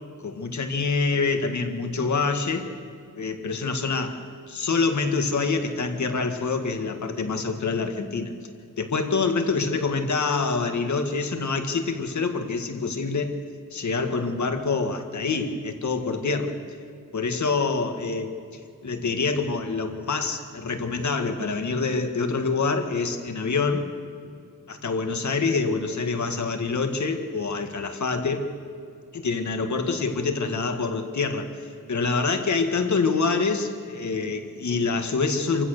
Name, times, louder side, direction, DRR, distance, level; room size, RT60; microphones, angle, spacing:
voice 1, 0.2-2.7 3.1-4.1 4.5-8.3 8.8-13.3 13.7-16.5 17.1-18.3 18.8-23.9 24.7-28.4 29.1-35.7, left 4 dB, 60° left, 6 dB, 1.9 m, -26 dB
27.0 x 15.5 x 6.7 m, 2.4 s
wide cardioid pair, 170°, 33 cm